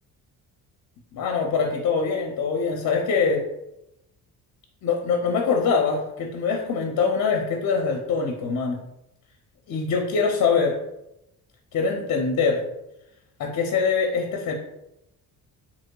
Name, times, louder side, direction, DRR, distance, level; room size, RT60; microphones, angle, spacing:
voice 1, 1.1-3.4 4.8-8.8 9.7-10.8 11.7-12.6 13.4-14.5, left 5 dB, 50° left, 2 dB, 0.5 m, -23 dB
3.7 x 2.9 x 2.2 m, 0.87 s
cardioid pair, 100°, 38 cm